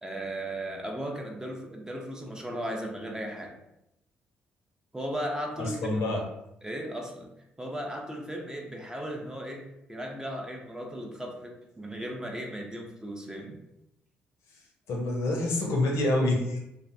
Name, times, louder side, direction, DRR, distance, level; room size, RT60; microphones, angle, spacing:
voice 1, 0.0-3.6 4.9-6.0 6.6-7.3 7.6-9.6 9.9-13.6, equal, 10° right, 1 dB, 0.5 m, -36 dB
voice 2, 5.6-6.2 14.9-16.6, left 2 dB, 60° left, -1 dB, 0.5 m, -27 dB
2.4 x 2.0 x 2.6 m, 0.85 s
figure-of-eight pair, 40°, 5 cm